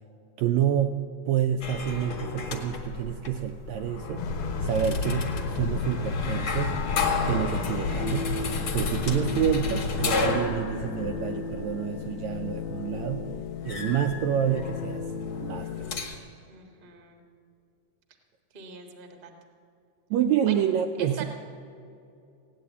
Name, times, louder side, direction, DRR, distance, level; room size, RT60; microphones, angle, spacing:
voice 1, 0.4-4.2 4.6-6.8 7.3-8.3 8.7-13.2 13.6-15.1 15.4-16.0 20.1-21.3, right 9 dB, 85° right, 6 dB, 1.6 m, -28 dB
Attic door creaking, 1.6-16.2, left 4 dB, 45° left, 2.1 m, -34 dB
sound 1, 4.2-10.1, left 4 dB, 65° left, 2.0 m, -30 dB
sound 2, 6.8-16.0, left 6 dB, 80° left, 1.5 m, -37 dB
voice 2, 16.5-17.2 18.5-19.3 20.5-20.6 21.0-21.3, right 7 dB, 45° right, 3 dB, 0.6 m, -42 dB
17.0 x 9.7 x 8.3 m, 2.6 s
omnidirectional pair, 3.7 m